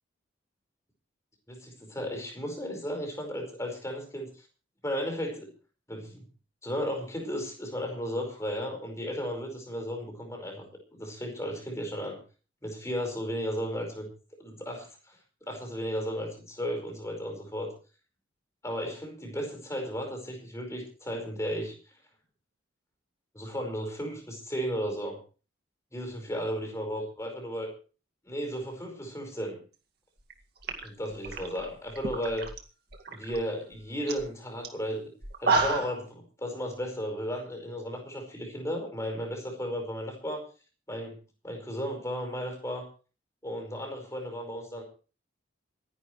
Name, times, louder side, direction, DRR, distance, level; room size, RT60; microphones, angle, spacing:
voice 1, 1.5-4.5 4.8-5.5 5.9-6.2 6.6-10.7 10.9-12.2 12.6-14.1 14.4-15.2 15.5-17.7 18.6-21.7 23.3-25.2 25.9-27.7 28.2-29.6 30.8-32.5 33.1-35.1 35.4-40.4 40.9-41.2 41.4-42.8 43.4-44.8, equal, 15° left, 2 dB, 5.0 m, -34 dB
sound 1, 30.2-30.3 30.6-32.6 32.9-33.4 33.7-33.8 34.1-34.3 34.6-34.7 35.2-36.0, right 3 dB, 50° right, 2.2 m, -30 dB
27.5 x 11.0 x 3.2 m, 0.37 s
head